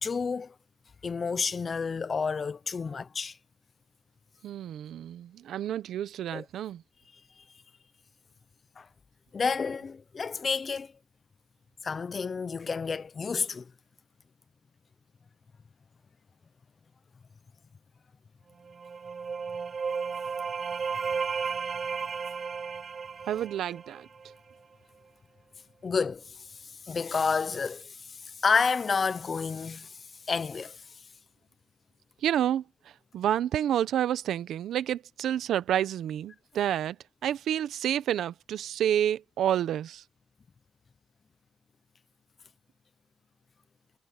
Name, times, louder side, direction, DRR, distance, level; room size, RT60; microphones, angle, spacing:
voice 1, 0.0-0.5 1.0-3.4 6.3-6.4 8.8-8.9 9.3-10.9 11.8-13.7 25.8-30.0 30.3-30.8, left 5 dB, 40° left, 0.9 m, -30 dB
voice 2, 4.4-6.8 23.3-24.1 32.2-32.6 33.1-37.0 37.2-40.0, right 10 dB, 75° right, 0.9 m, -29 dB
sound 1, 18.6-24.3, right 5 dB, 40° right, 0.6 m, -34 dB
cardioid pair, 90°, 0 cm